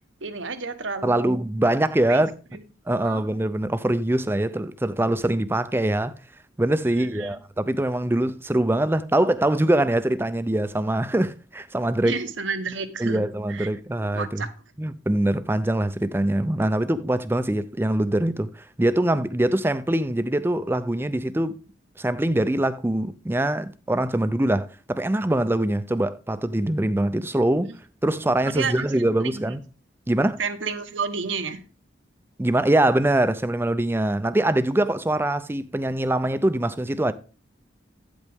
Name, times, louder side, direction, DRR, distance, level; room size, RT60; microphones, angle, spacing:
voice 1, 0.2-1.3 2.1-2.2 2.5-2.6 3.0-3.2 7.0-7.4 12.0-13.7 14.1-14.5 28.4-29.6 30.4-31.6, right 5 dB, 85° right, 1.1 m, -31 dB
voice 2, 1.0-2.3 2.9-6.1 6.6-12.2 13.0-14.5 14.8-21.6 22.0-27.7 28.0-29.6 30.1-30.4 32.4-37.1, right 1 dB, 10° right, 0.4 m, -23 dB
9.2 x 8.2 x 3.5 m
head